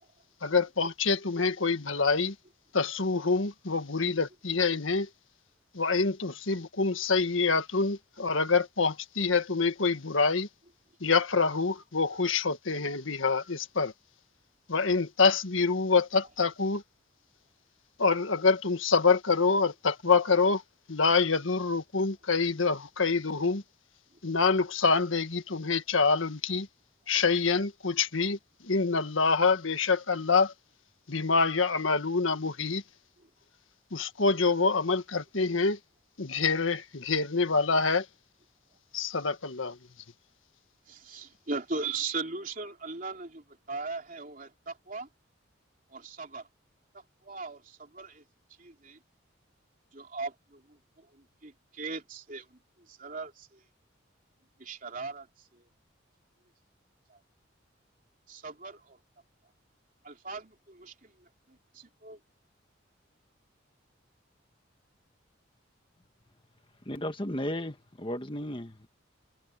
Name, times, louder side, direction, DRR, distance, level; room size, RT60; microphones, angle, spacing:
voice 1, 0.4-2.4 2.7-5.1 5.7-10.5 11.0-13.9 14.7-16.8 18.0-20.6 20.9-23.6 24.2-26.7 27.1-28.4 28.6-30.5 31.1-32.8 33.9-35.8 36.2-38.1 38.9-39.8, left 4 dB, 85° left, 1.7 m, -26 dB
voice 2, 40.9-45.1 45.9-46.5 46.9-48.2 48.6-49.0 49.9-53.6 54.6-55.7 57.1-57.2 58.3-59.0 60.0-62.2, right 4 dB, 45° right, 3.2 m, -39 dB
voice 3, 66.9-68.9, left 1 dB, 25° left, 1.4 m, -34 dB
head